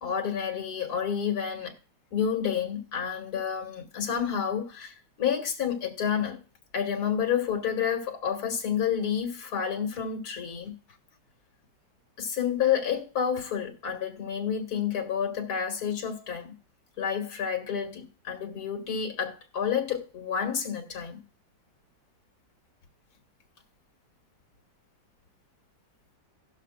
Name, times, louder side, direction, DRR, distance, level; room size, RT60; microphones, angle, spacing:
voice 1, 0.0-1.7 2.1-6.4 6.7-10.7 12.2-16.5 17.0-21.2, left 8 dB, 60° left, 2.1 m, -29 dB
18.5 x 6.5 x 2.3 m
omnidirectional pair, 2.0 m